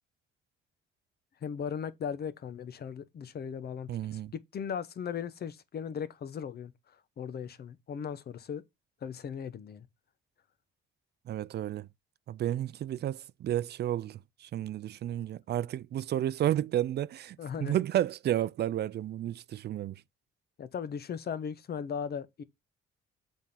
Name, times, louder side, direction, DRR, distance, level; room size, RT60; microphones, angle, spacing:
voice 1, 1.4-6.7 7.2-8.6 9.0-9.9 17.4-17.8 20.6-22.4, left 7 dB, 55° left, 0.9 m, -37 dB
voice 2, 3.9-4.3 11.3-11.9 12.3-17.4 17.6-20.0, right 12 dB, 55° right, 0.5 m, -31 dB
7.3 x 3.6 x 5.5 m
cardioid pair, 90°, 20 cm